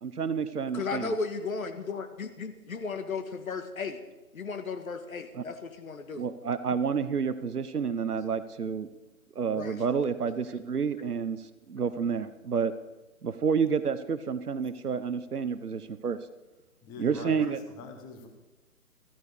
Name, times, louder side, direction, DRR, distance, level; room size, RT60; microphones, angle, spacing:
voice 1, 0.0-1.2 5.3-5.4 6.2-8.9 9.3-12.7 13.2-16.2 17.0-17.6, right 6 dB, 90° right, 12 dB, 1.1 m, -29 dB
voice 2, 0.7-4.0 4.3-6.2 9.5-9.8, left 4 dB, 65° left, 8 dB, 1.8 m, -35 dB
voice 3, 16.8-18.3, left 4 dB, 10° left, 5 dB, 1.0 m, -44 dB
15.5 x 14.5 x 4.9 m, 1.1 s
figure-of-eight pair, 150°, 44 cm